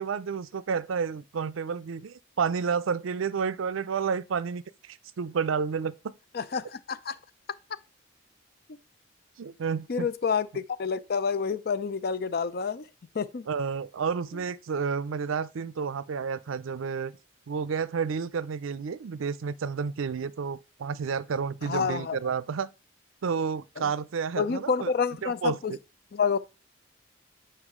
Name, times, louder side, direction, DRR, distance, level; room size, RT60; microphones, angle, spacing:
voice 1, 0.0-6.1 9.4-10.1 13.5-17.1 17.5-22.7 23.2-24.9 25.2-25.8, right 6 dB, 80° right, 0.4 m, -30 dB
voice 2, 6.3-7.2 8.7-8.8 9.9-12.9 13.1-13.5 21.6-22.3 23.8-23.9 24.4-25.7 26.1-26.4, left 5 dB, 50° left, 0.4 m, -28 dB
8.0 x 5.5 x 3.7 m
head